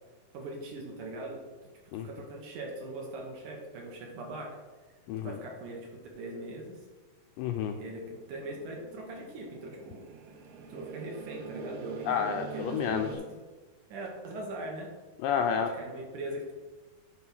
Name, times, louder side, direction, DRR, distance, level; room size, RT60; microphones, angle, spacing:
voice 1, 0.3-1.4 2.0-4.6 5.2-6.8 7.8-10.0 10.6-12.1 12.5-13.2 13.9-14.9 15.6-16.5, right 1 dB, 65° right, 0 dB, 2.5 m, -41 dB
voice 2, 7.4-7.8 12.1-13.1 15.2-15.7, left 8 dB, 85° left, 4 dB, 2.0 m, -30 dB
sound 1, 7.9-13.2, right 4 dB, 85° right, 1.6 m, -43 dB
9.2 x 3.4 x 5.9 m, 1.3 s
omnidirectional pair, 4.3 m